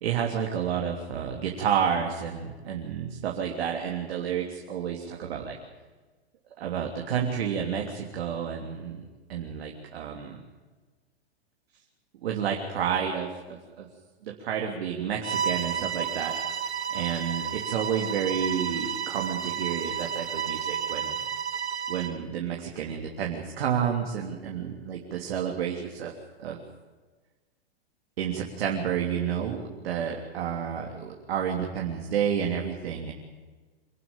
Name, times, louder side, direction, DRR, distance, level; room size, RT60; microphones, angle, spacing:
voice 1, 0.0-5.6 6.6-9.0 9.3-10.4 12.2-13.9 14.2-16.3 16.9-21.2 21.9-26.1 26.4-26.6 28.2-33.1, right 8 dB, 65° right, 1 dB, 3.3 m, -30 dB
Bowed string instrument, 15.2-22.2, right 7 dB, 90° right, 1.5 m, -31 dB
26.0 x 12.0 x 9.1 m, 1.3 s
hypercardioid pair, 125°, 32 cm